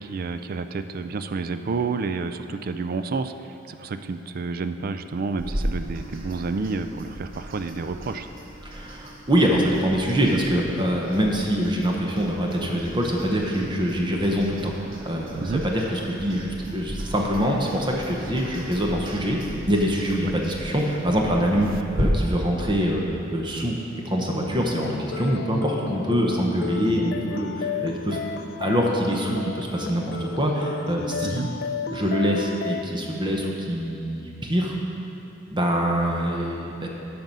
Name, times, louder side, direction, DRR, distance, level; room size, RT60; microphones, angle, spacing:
voice 1, 0.0-8.3 15.4-15.6 20.3-20.4 31.2-31.5, right 4 dB, 50° right, 9 dB, 0.4 m, -30 dB
sound 1, 5.4-22.0, equal, 80° right, 1.4 m, -37 dB
voice 2, 8.6-14.7 15.0-23.8 24.0-31.5 31.9-34.7 35.5-36.9, equal, 25° right, -1 dB, 0.9 m, -24 dB
sound 2, 24.8-32.8, left 6 dB, 55° left, 0.4 m, -33 dB
9.3 x 6.1 x 5.4 m, 2.9 s
head